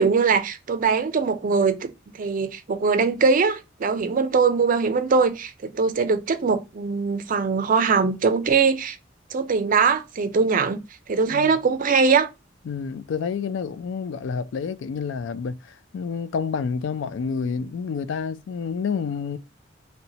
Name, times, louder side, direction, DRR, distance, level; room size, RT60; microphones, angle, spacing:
voice 1, 0.0-1.9 2.2-9.0 9.3-10.8 11.1-12.3, right 5 dB, 45° right, 0.4 m, -21 dB
voice 2, 12.7-19.4, left 6 dB, 75° left, 0.3 m, -29 dB
2.8 x 2.1 x 4.0 m
head